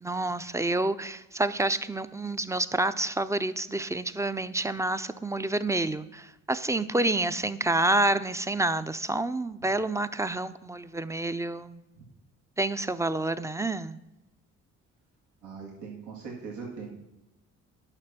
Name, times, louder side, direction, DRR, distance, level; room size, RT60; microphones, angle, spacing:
voice 1, 0.0-11.8 12.6-14.0, right 2 dB, 10° right, 13 dB, 0.5 m, -28 dB
voice 2, 15.4-17.1, right 5 dB, 85° right, -3 dB, 2.1 m, -41 dB
9.8 x 6.0 x 5.9 m, 1.0 s
cardioid pair, 90°, 30 cm